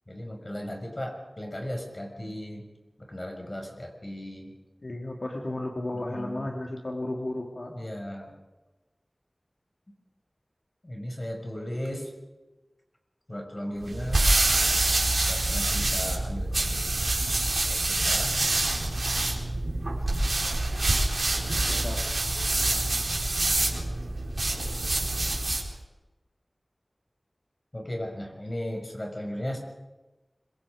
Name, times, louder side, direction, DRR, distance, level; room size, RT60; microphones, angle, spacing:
voice 1, 0.1-2.6 3.0-4.5 5.9-6.5 7.7-8.3 10.8-12.1 13.3-14.3 15.3-17.1 17.7-18.4 27.7-29.6, equal, 40° left, 3 dB, 6.1 m, -36 dB
voice 2, 4.8-7.7 21.5-22.0, left 1 dB, 70° left, 0 dB, 2.6 m, -34 dB
sound 1, 13.8-25.7, right 2 dB, 80° right, 4.4 m, -26 dB
25.5 x 24.5 x 5.1 m, 1.1 s
wide cardioid pair, 50°, 0 cm